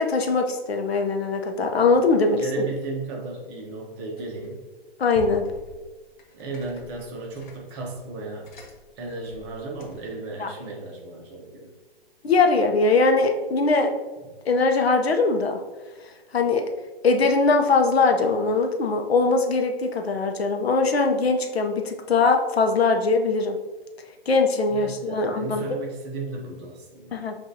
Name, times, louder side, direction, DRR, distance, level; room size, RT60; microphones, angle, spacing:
voice 1, 0.0-2.7 5.0-5.4 10.4-10.5 12.2-13.9 14.4-15.6 16.3-16.7 17.0-23.6 24.3-25.7 27.1-27.4, left 3 dB, 90° left, 4 dB, 0.7 m, -21 dB
voice 2, 2.2-4.7 6.3-8.5 9.0-11.7 24.7-27.2, right 3 dB, 30° right, 0 dB, 0.9 m, -35 dB
sound 1, 4.2-4.7 5.1-10.2, left 3 dB, 50° left, 0.8 m, -45 dB
7.4 x 2.6 x 2.7 m, 1.2 s
hypercardioid pair, 140°, 30 cm